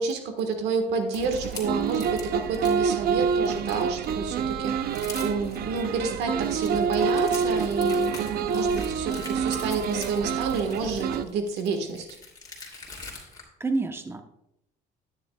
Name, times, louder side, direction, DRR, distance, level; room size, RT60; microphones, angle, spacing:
voice 1, 0.0-4.7 5.2-12.1, right 4 dB, 85° right, 6 dB, 1.5 m, -29 dB
sound 1, 1.1-2.8 3.2-4.1 4.5-4.6 4.8-5.8 6.3-13.4, left 3 dB, 25° left, 2.8 m, -43 dB
sound 2, 1.2-11.2, right 6 dB, 65° right, 0.6 m, -27 dB
voice 2, 12.9-13.2 13.6-14.2, right 3 dB, 15° right, 7 dB, 0.8 m, -30 dB
12.5 x 9.8 x 2.3 m, 0.81 s
cardioid pair, 110°, 17 cm